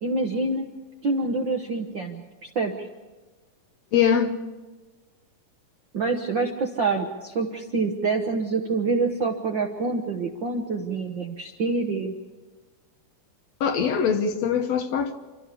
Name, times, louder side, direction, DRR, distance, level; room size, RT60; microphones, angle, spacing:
voice 1, 0.0-0.7 1.0-2.9 5.9-12.1, right 3 dB, 60° right, 1.3 m, -26 dB
voice 2, 3.9-4.4 13.6-15.2, left 7 dB, 65° left, 1.9 m, -22 dB
29.0 x 13.0 x 8.4 m
omnidirectional pair, 3.7 m